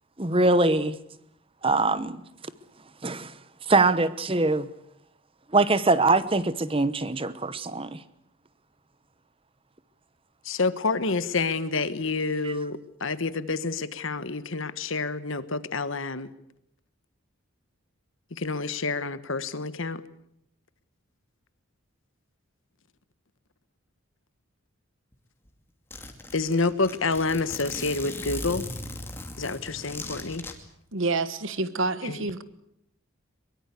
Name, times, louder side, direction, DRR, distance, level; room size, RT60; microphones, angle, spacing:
voice 1, 0.2-1.0 1.6-2.2 3.0-3.3 3.7-4.7 5.5-8.0 12.4-12.5, right 2 dB, 25° right, 1.0 m, -23 dB
voice 2, 10.4-16.3 18.3-20.0 26.3-28.7 29.4-30.4 32.0-32.2, left 3 dB, 65° left, 1.3 m, -28 dB
Zipper (clothing), 25.1-25.2 25.5-25.6 25.9-30.5, left 2 dB, 10° left, 2.5 m, -38 dB
voice 3, 30.9-32.4, right 3 dB, 65° right, 1.4 m, -28 dB
23.0 x 22.5 x 8.3 m
head